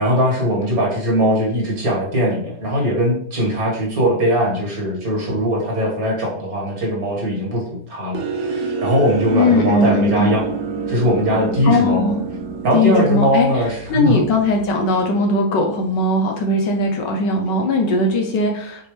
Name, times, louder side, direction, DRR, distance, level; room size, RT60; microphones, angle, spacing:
voice 1, 0.0-7.6 7.9-10.4 10.9-12.1 12.6-14.2, equal, 55° right, -2 dB, 2.3 m, -20 dB
sound 1, 8.1-14.7, right 4 dB, 90° right, 1.4 m, -28 dB
voice 2, 9.3-10.4 11.6-12.2 12.7-13.5 13.9-18.9, left 2 dB, 80° left, 2 dB, 1.4 m, -19 dB
7.5 x 4.3 x 3.3 m, 0.67 s
omnidirectional pair, 1.9 m